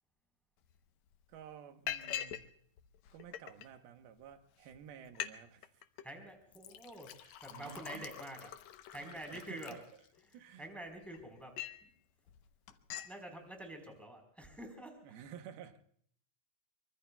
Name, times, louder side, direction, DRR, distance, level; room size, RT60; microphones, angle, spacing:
Liquid, 0.7-0.8 1.1-1.4 1.9-2.5 2.8-3.7 4.3-4.4 4.7-4.8 5.0-5.3 5.6-6.0 6.5-10.3 10.9-11.9 12.3-12.4 12.7-13.1, left 11 dB, 80° left, 1.6 m, -44 dB
voice 1, 1.3-2.6 3.1-5.8 7.5-8.1 8.9-9.8 10.3-10.7 15.0-15.8, right 8 dB, 90° right, 7 dB, 3.0 m, -52 dB
voice 2, 6.0-9.8 10.3-11.9 13.0-15.1, right 1 dB, ahead, 4 dB, 3.4 m, -48 dB
24.5 x 24.5 x 2.3 m, 0.62 s
omnidirectional pair, 4.2 m